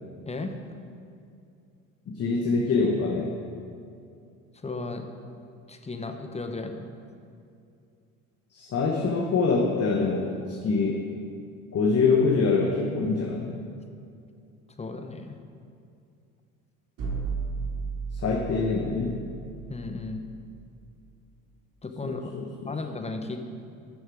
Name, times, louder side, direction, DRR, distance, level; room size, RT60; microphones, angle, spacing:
voice 1, 0.3-0.6 4.6-5.1 5.7-6.9 14.8-15.4 19.7-20.2 21.8-22.3 22.7-23.4, left 3 dB, 15° left, 6 dB, 0.8 m, -35 dB
voice 2, 2.1-3.3 8.5-11.0 11.7-13.5 18.1-19.2 22.0-22.7, left 4 dB, 35° left, 0 dB, 1.1 m, -25 dB
sound 1, 17.0-20.8, right 4 dB, 50° right, 2.3 m, -35 dB
11.0 x 6.4 x 4.9 m, 2.4 s
hypercardioid pair, 65°, 41 cm